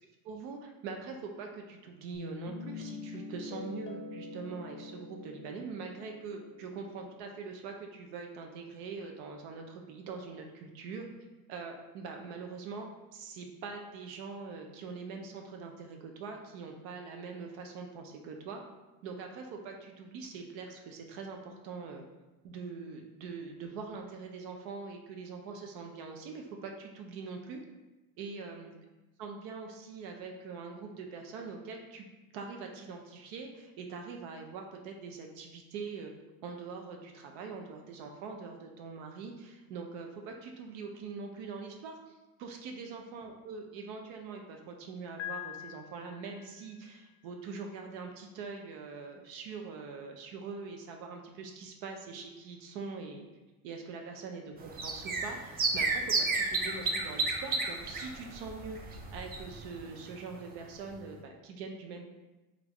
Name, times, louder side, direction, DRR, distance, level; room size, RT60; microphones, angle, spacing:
voice 1, 0.2-11.1 11.5-18.6 19.0-22.0 22.4-27.6 28.2-28.7 29.2-32.0 32.3-36.1 36.4-53.3 53.6-62.1, right 4 dB, 70° right, 3 dB, 0.6 m, -43 dB
Guitar, 2.1-7.2, left 3 dB, 30° left, 0.6 m, -45 dB
Piano, 45.2-47.1, left 13 dB, 80° left, 0.6 m, -44 dB
sound 1, 54.6-59.8 60.0-60.1 60.4-60.5, right 3 dB, 25° right, 0.4 m, -32 dB
3.3 x 2.5 x 3.1 m, 1.1 s
supercardioid pair, 100°, 39 cm